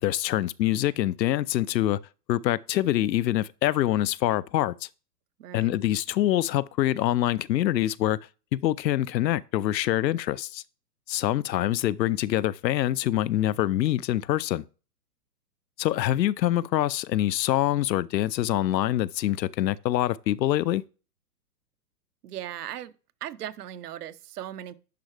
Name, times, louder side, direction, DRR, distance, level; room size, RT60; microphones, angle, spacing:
voice 1, 0.0-2.0 2.3-4.9 5.5-8.2 8.5-10.6 11.1-14.6 15.8-20.8, left 13 dB, 85° left, 0.6 m, -25 dB
voice 2, 5.4-5.8 22.2-22.9 23.2-24.8, right 11 dB, 65° right, 0.8 m, -38 dB
10.5 x 4.7 x 3.2 m
hypercardioid pair, 135°, 49 cm